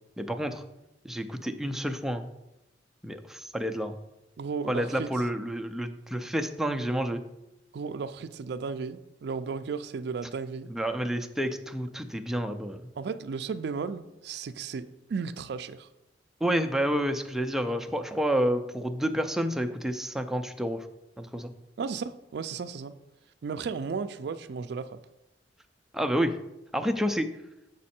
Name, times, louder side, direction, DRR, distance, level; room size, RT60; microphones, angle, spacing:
voice 1, 0.2-0.6 1.0-2.2 3.0-3.9 4.7-7.2 10.7-12.8 16.4-20.9 21.2-21.5 25.9-26.3 26.7-27.3, equal, ahead, 6 dB, 0.4 m, -29 dB
voice 2, 4.4-5.1 7.7-10.7 13.0-15.9 21.8-22.9 23.4-25.0, right 5 dB, 65° right, 10 dB, 0.4 m, -34 dB
7.3 x 5.2 x 4.3 m, 0.92 s
head